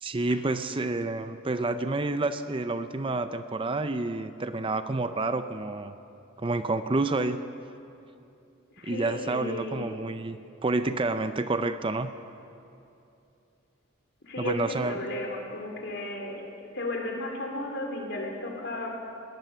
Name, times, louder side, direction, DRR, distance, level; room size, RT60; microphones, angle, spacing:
voice 1, 0.0-5.9 6.4-7.4 8.8-10.4 10.6-12.1 14.4-15.0, right 2 dB, 25° right, 10 dB, 0.6 m, -29 dB
voice 2, 8.8-9.9 14.3-16.4 16.7-18.9, left 1 dB, 60° left, 1 dB, 3.8 m, -34 dB
21.5 x 18.5 x 6.8 m, 2.7 s
head